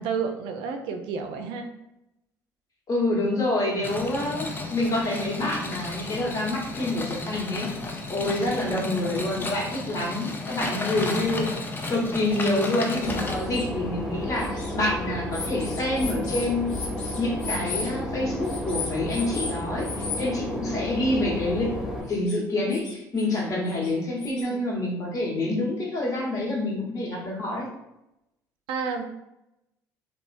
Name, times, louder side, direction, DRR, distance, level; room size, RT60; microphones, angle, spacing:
voice 1, 0.0-1.7 8.6-8.9 12.7-12.9 24.4-24.6 28.7-29.0, right 5 dB, 65° right, 5 dB, 0.4 m, -31 dB
voice 2, 2.9-4.4 4.7-7.7 8.1-11.5 11.9-16.7 17.2-27.7, left 2 dB, 40° left, -3 dB, 1.1 m, -27 dB
sound 1, 3.8-13.3, left 2 dB, 20° left, 0.5 m, -33 dB
sound 2, 7.9-8.0 8.3-8.4 9.2-9.3 9.7-9.8 10.3-10.4 11.3-11.4 11.8-11.9 12.6-13.7 14.3-14.7 15.3-17.9 18.4-19.5 19.8-20.2 22.1-22.4 22.7-23.4 23.7-24.4, left 4 dB, 75° left, 0.7 m, -36 dB
Boat Water vehicle / Engine, 13.0-22.0, left 1 dB, 5° right, 0.8 m, -32 dB
2.9 x 2.1 x 2.5 m, 0.88 s
hypercardioid pair, 60°, 9 cm